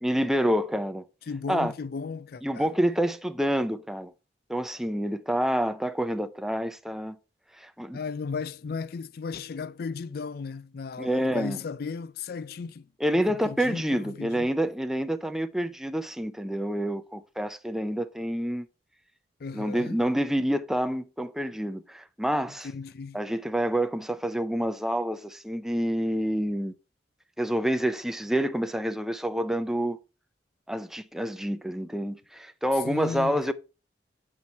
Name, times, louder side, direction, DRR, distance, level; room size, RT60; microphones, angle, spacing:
voice 1, 0.0-1.0 1.5-1.7 2.4-4.1 4.5-7.2 7.6-8.0 11.0-11.6 13.0-18.7 19.5-22.7 23.1-26.7 27.4-30.0 30.7-33.5, equal, ahead, 0.5 m, -28 dB
voice 2, 1.3-2.7 7.9-14.5 19.4-20.0 22.6-23.2 32.8-33.5, left 5 dB, 55° left, 0.4 m, -35 dB
8.0 x 5.8 x 4.1 m
head